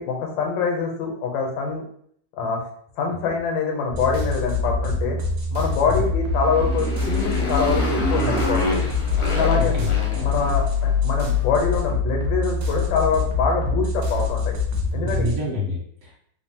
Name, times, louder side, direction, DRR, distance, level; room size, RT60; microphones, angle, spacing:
voice 1, 0.0-1.8 2.4-2.7 3.0-5.2 5.5-8.8 9.3-9.8 10.2-14.5 14.9-15.4, left 5 dB, 90° left, 1 dB, 1.4 m, -25 dB
sound 1, 3.9-15.4, left 4 dB, 85° right, 1.3 m, -24 dB
Motorcycle, 6.3-10.9, left 1 dB, 65° left, 0.8 m, -28 dB
voice 2, 9.6-9.9 15.0-16.2, left 2 dB, 55° right, -6 dB, 0.7 m, -28 dB
3.3 x 2.1 x 2.7 m, 0.64 s
omnidirectional pair, 2.0 m